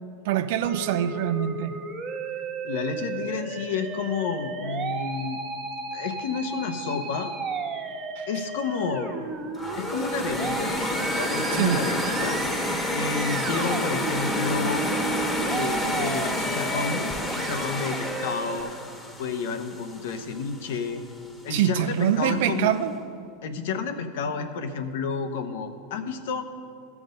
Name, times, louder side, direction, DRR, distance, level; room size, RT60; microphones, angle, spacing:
voice 1, 0.2-1.7 8.2-8.3 11.5-11.8 21.5-22.9, right 11 dB, 65° right, 11 dB, 0.6 m, -24 dB
Musical instrument, 0.6-18.6, right 4 dB, 35° right, 1.4 m, -34 dB
voice 2, 2.6-5.4 5.9-7.3 8.3-9.1 9.8-10.8 11.1-12.4 12.9-14.9 15.5-17.0 17.3-18.7 19.2-21.0 21.4-22.7 23.4-26.5, left 5 dB, 70° left, 7 dB, 0.9 m, -30 dB
sound 1, 9.5-20.6, left 1 dB, 15° left, 1.3 m, -29 dB
14.0 x 6.0 x 5.2 m, 2.3 s
hypercardioid pair, 105°, 0 cm